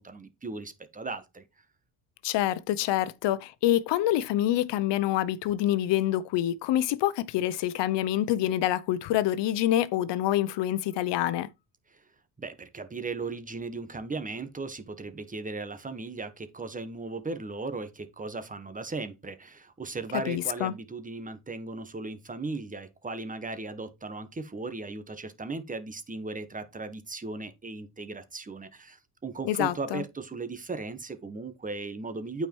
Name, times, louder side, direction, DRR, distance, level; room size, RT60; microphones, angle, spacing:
voice 1, 0.0-1.4 11.9-12.0 12.4-32.5, right 3 dB, 20° right, 1.3 m, -37 dB
voice 2, 2.2-11.5 20.3-20.7 29.5-30.0, left 13 dB, 85° left, 0.9 m, -26 dB
8.9 x 4.8 x 4.6 m
cardioid pair, 130°, 41 cm